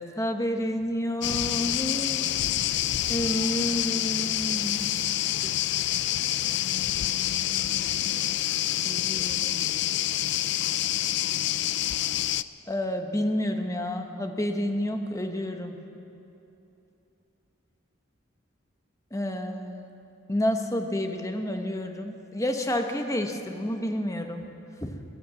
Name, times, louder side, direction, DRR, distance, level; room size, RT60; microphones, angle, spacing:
voice 1, 0.0-2.2 3.1-4.9 5.4-5.5 8.8-9.6 12.7-15.7 19.1-19.8 20.3-24.4 24.8-25.0, equal, 15° left, 5 dB, 1.0 m, -30 dB
sound 1, 1.2-12.4, left 13 dB, 55° left, 0.3 m, -27 dB
16.0 x 12.0 x 7.5 m, 2.9 s
head